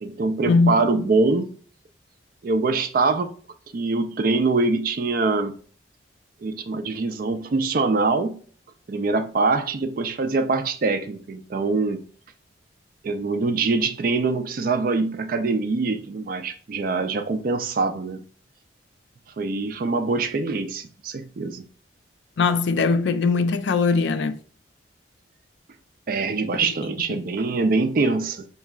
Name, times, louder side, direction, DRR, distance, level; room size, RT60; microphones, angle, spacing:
voice 1, 0.0-1.5 2.4-3.3 3.7-5.6 6.4-8.4 8.9-12.0 13.0-18.2 19.4-21.6 26.1-28.5, right 3 dB, 45° right, 0.4 m, -24 dB
voice 2, 22.4-24.4, left 4 dB, 65° left, 0.3 m, -20 dB
4.5 x 3.0 x 2.4 m
head